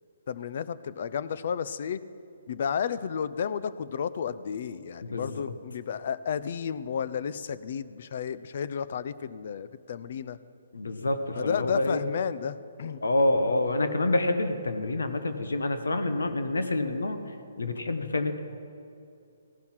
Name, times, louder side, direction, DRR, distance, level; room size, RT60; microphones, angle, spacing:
voice 1, 0.3-2.0 2.5-10.4 11.3-13.0, left 7 dB, 55° left, 15 dB, 0.6 m, -32 dB
voice 2, 5.0-5.4 10.7-12.0 13.0-17.2 17.6-18.4, left 2 dB, 80° left, 8 dB, 1.3 m, -27 dB
16.5 x 12.0 x 5.8 m, 2.6 s
figure-of-eight pair, 135°, 0 cm